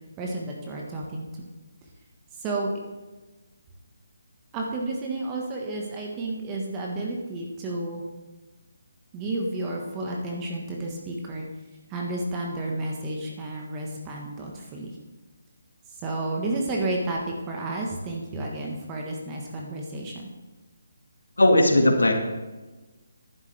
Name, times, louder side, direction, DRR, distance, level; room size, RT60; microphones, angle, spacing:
voice 1, 0.2-1.5 2.4-2.7 4.5-8.0 9.1-11.4 11.9-15.0 16.0-20.3, right 2 dB, 20° right, -1 dB, 1.3 m, -31 dB
voice 2, 21.4-22.1, left 1 dB, 85° left, 3 dB, 1.9 m, -17 dB
11.5 x 10.5 x 3.4 m, 1.2 s
figure-of-eight pair, 155°, 0 cm